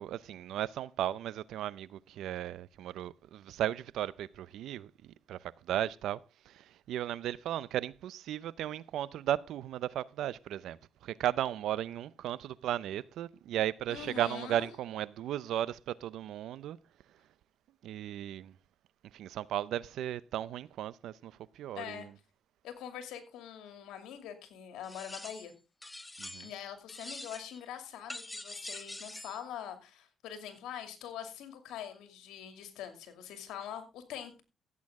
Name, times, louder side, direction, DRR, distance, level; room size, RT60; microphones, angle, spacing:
voice 1, 0.0-4.9 5.3-5.4 5.7-6.2 6.9-10.8 11.0-16.8 17.8-18.5 19.1-21.3 21.6-22.0 26.2-26.5, right 12 dB, 80° right, 0.5 m, -35 dB
voice 2, 13.9-14.7 21.7-22.1 22.6-25.5 26.4-34.4, left 9 dB, 90° left, 2.5 m, -44 dB
sound 1, 24.8-25.5 25.8-26.6 26.9-27.6 28.1-29.4, left 2 dB, 10° left, 0.7 m, -45 dB
15.0 x 8.6 x 3.6 m
cardioid pair, 90°, 0 cm